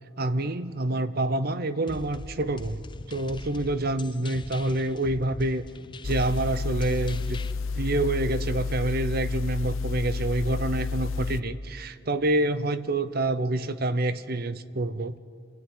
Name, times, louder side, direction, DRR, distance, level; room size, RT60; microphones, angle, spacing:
voice 1, 0.2-5.7 6.0-7.4 7.7-15.2, right 2 dB, 50° right, 13 dB, 0.8 m, -27 dB
sound 1, 1.9-7.5, left 2 dB, 25° left, 0.5 m, -42 dB
sound 2, 6.0-11.4, left 4 dB, 80° left, 0.7 m, -30 dB
29.0 x 16.0 x 9.4 m, 2.3 s
head